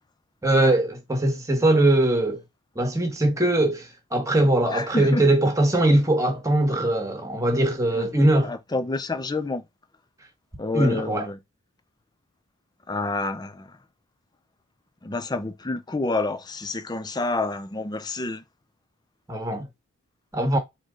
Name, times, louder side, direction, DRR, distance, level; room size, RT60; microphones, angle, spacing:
voice 1, 0.4-2.4 2.7-8.5 10.7-11.3 19.3-19.6 20.3-20.6, right 1 dB, 15° right, 1.3 m, -21 dB
voice 2, 4.7-5.3 7.9-8.1 8.4-9.6 10.6-11.4 12.9-13.7 15.0-18.4, left 2 dB, 20° left, 0.4 m, -28 dB
4.5 x 3.1 x 3.7 m
head